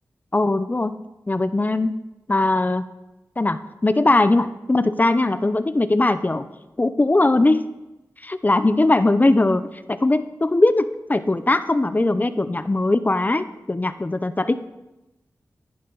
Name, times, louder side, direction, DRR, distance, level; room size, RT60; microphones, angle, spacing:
voice 1, 0.3-0.9 1.3-1.9 2.3-2.8 3.4-6.5 6.8-7.6 8.2-14.6, left 2 dB, 30° left, 12 dB, 0.6 m, -20 dB
14.0 x 11.0 x 4.0 m, 0.98 s
wide cardioid pair, 60°, 6 cm